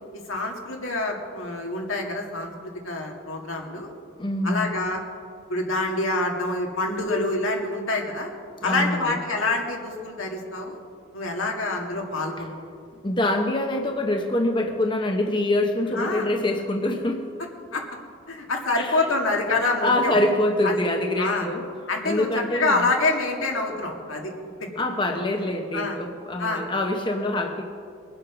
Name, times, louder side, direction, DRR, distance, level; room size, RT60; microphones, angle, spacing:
voice 1, 0.1-3.9 4.4-5.0 5.5-8.3 8.6-10.8 11.1-12.5 15.9-16.3 17.7-17.8 18.3-20.2 20.6-20.8 21.2-21.5 21.9-24.7 25.7-26.0 26.4-26.6, left 2 dB, 85° left, 1 dB, 2.2 m, -26 dB
voice 2, 4.2-4.7 8.6-9.2 13.0-17.3 18.7-19.2 19.5-21.6 22.0-22.8 24.8-27.6, left 1 dB, 25° left, 3 dB, 0.9 m, -25 dB
22.0 x 7.9 x 6.1 m, 2.2 s
head